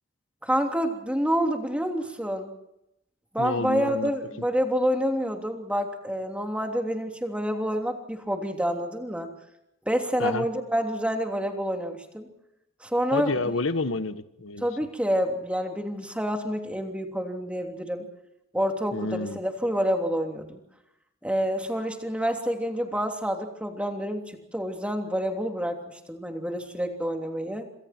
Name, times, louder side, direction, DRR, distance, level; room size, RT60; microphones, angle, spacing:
voice 1, 0.4-2.5 3.3-9.3 9.9-12.3 12.8-13.3 14.6-18.0 18.5-20.6 21.2-24.2 24.5-25.8 26.1-27.6, equal, 5° right, 4 dB, 3.1 m, -28 dB
voice 2, 3.4-4.1 10.2-10.5 13.1-14.7 18.9-19.4, left 3 dB, 85° left, 11 dB, 1.3 m, -29 dB
27.0 x 26.5 x 4.5 m, 0.83 s
head